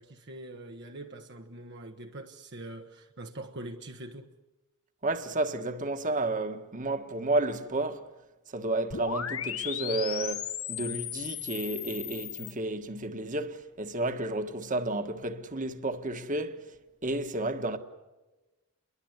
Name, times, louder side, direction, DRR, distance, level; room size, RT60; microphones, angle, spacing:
voice 1, 0.0-4.3, right 1 dB, 50° right, 1.3 m, -43 dB
voice 2, 5.0-8.1 8.5-16.6 17.0-17.8, right 2 dB, 35° right, 1.7 m, -31 dB
sound 1, 8.9-12.5, left 9 dB, 70° left, 1.8 m, -36 dB
30.0 x 23.0 x 8.1 m
head